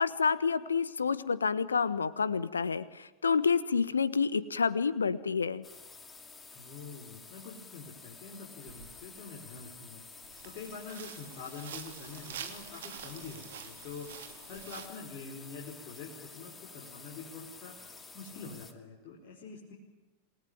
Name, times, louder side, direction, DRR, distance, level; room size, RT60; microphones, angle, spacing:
voice 1, 0.0-5.6, left 5 dB, 75° left, 17 dB, 1.2 m, -29 dB
sound 1, 5.6-18.7, left 4 dB, 15° left, 2.5 m, -50 dB
voice 2, 6.5-10.0 10.4-14.1 14.5-17.7 18.1-19.7, left 4 dB, 45° left, -2 dB, 5.1 m, -45 dB
footsteps in forest, 8.7-8.9 9.5-9.7 10.2-14.9, right 9 dB, 60° right, 3.0 m, -47 dB
28.0 x 19.5 x 9.0 m, 1.1 s
figure-of-eight pair, 90°, 0 cm